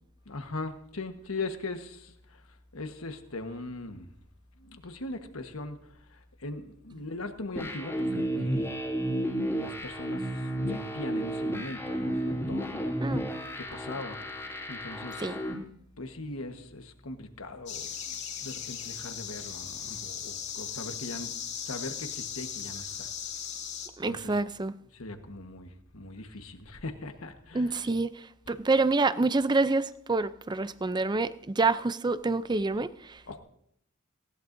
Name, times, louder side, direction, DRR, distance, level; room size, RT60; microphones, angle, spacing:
voice 1, 0.2-2.4 2.7-4.1 4.6-5.8 6.1-8.8 9.4-13.2 13.6-14.2 14.7-15.4 16.0-21.3 21.7-23.1 24.0-24.4 24.9-27.9 28.5-28.6 33.3-33.4, left 2 dB, 90° left, 1.4 m, -40 dB
sound 1, 7.6-15.5, equal, 15° left, 2.3 m, -32 dB
sound 2, 17.7-23.9, left 8 dB, 60° left, 2.5 m, -38 dB
voice 2, 24.0-24.7 27.5-28.1 28.5-33.2, right 3 dB, 20° right, 0.5 m, -27 dB
19.0 x 16.5 x 2.7 m
head